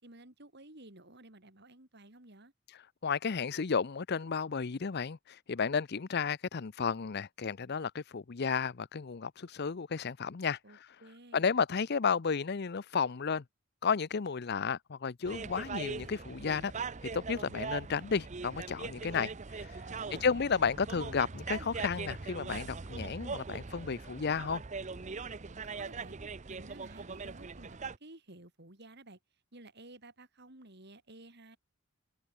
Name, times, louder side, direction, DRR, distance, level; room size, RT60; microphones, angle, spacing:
voice 1, 0.0-2.5 10.6-11.6 19.0-19.4 19.9-20.3 25.5-26.2 26.5-29.2 29.5-31.6, right 2 dB, 50° right, 3.8 m, -53 dB
voice 2, 2.7-11.0 11.3-13.4 13.8-16.7 17.0-19.3 19.6-19.9 20.2-24.6, left 5 dB, 50° left, 0.6 m, -33 dB
sound 1, 15.2-28.0, right 4 dB, 35° right, 0.7 m, -41 dB
head